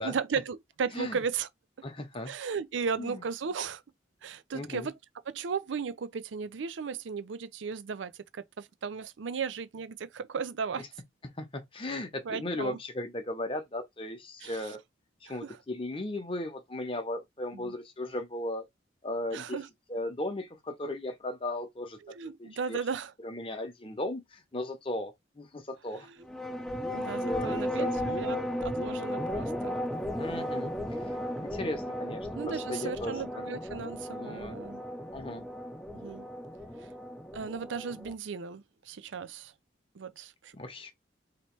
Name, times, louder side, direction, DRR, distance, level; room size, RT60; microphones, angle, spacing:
voice 1, 0.0-1.5 2.3-3.8 4.2-5.0 5.3-10.8 12.2-12.8 14.4-14.7 15.3-15.6 17.5-17.7 19.3-19.7 22.1-23.1 26.0-26.2 26.9-29.8 32.3-34.8 35.9-36.3 37.3-39.5 39.9-40.5, right 5 dB, 85° right, 0.5 m, -36 dB
voice 2, 1.8-2.3 3.0-3.2 4.5-4.9 11.2-14.8 15.2-18.6 19.0-19.6 19.9-22.8 23.2-26.1 27.2-27.9 30.2-30.7 31.4-33.2 34.1-34.6 35.1-35.4 40.5-40.9, left 1 dB, 30° left, 0.8 m, -36 dB
sound 1, 26.2-38.1, equal, ahead, 0.5 m, -35 dB
3.0 x 2.9 x 4.4 m
head